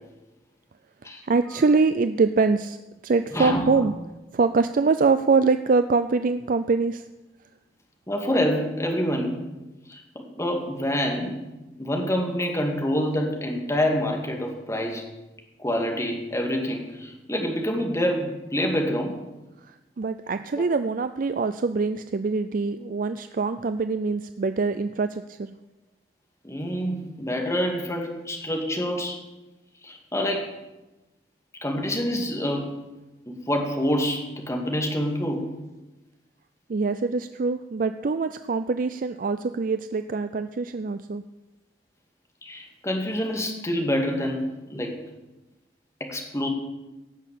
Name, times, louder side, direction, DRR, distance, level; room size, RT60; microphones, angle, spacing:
voice 1, 1.2-2.8 3.0-3.9 4.3-7.0 19.7-25.5 36.7-41.2, right 4 dB, 50° right, 10 dB, 0.4 m, -24 dB
voice 2, 3.3-3.9 8.1-9.4 9.9-10.0 10.4-11.3 11.8-15.0 15.6-19.2 26.4-29.2 29.8-30.5 31.6-32.7 33.3-35.4 42.4-44.9 46.0-46.5, equal, 15° left, 2 dB, 2.2 m, -27 dB
17.0 x 6.4 x 8.4 m, 1.0 s
head